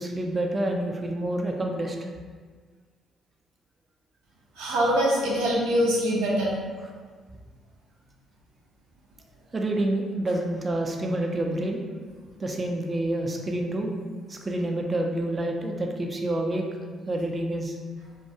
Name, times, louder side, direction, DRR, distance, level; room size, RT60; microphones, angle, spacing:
voice 1, 0.0-2.1 9.5-11.8 12.4-13.9 14.3-16.6 17.1-17.8, right 1 dB, 35° right, 2 dB, 0.4 m, -28 dB
voice 2, 4.6-6.6, equal, 80° right, -4 dB, 0.5 m, -23 dB
2.2 x 2.2 x 2.7 m, 1.5 s
hypercardioid pair, 50°, 0 cm